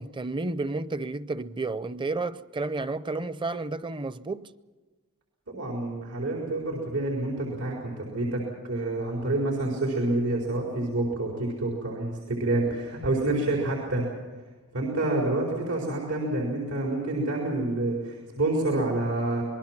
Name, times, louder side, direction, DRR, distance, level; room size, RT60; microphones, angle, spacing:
voice 1, 0.0-4.5, right 3 dB, 20° right, 0.6 m, -31 dB
voice 2, 5.5-14.0 14.7-19.4, right 2 dB, 90° right, 4.5 m, -28 dB
26.5 x 21.0 x 6.0 m
head